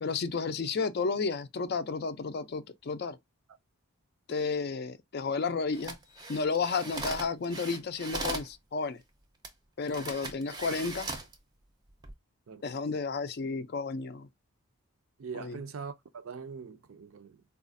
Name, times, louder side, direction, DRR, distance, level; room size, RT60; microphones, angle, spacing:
voice 1, 0.0-3.2 4.3-5.9 6.3-9.0 9.8-11.1 12.6-14.3 15.3-15.6, left 4 dB, 45° left, 0.4 m, -32 dB
sound 1, 5.7-8.5 9.4-9.5 9.9-11.3 11.9-12.1, right 2 dB, 20° right, 0.5 m, -39 dB
voice 2, 15.2-17.4, right 5 dB, 70° right, 0.4 m, -42 dB
4.0 x 2.4 x 2.4 m
head